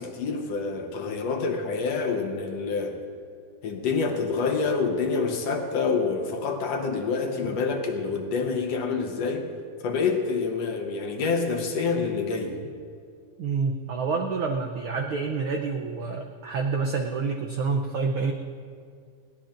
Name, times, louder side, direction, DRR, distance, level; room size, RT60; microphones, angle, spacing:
voice 1, 0.0-3.0 3.6-9.5 9.8-12.6, left 4 dB, 65° left, 3 dB, 2.0 m, -27 dB
voice 2, 13.4-18.3, right 4 dB, 80° right, 3 dB, 1.2 m, -28 dB
20.5 x 17.5 x 2.6 m, 2.2 s
omnidirectional pair, 3.3 m